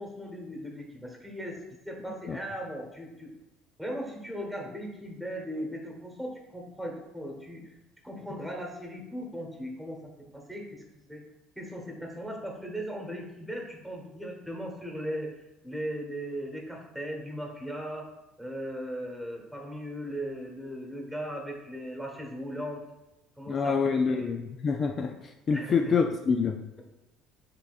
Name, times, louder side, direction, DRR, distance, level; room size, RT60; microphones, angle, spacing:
voice 1, 0.0-3.3 3.8-7.6 8.0-10.8 11.1-11.2 11.6-15.3 15.6-18.1 18.4-22.8 23.4-24.3 25.5-25.9, equal, ahead, 0 dB, 1.2 m, -38 dB
voice 2, 23.5-26.6, left 5 dB, 40° left, 3 dB, 0.3 m, -27 dB
5.7 x 3.5 x 2.5 m, 0.96 s
supercardioid pair, 80°, 0 cm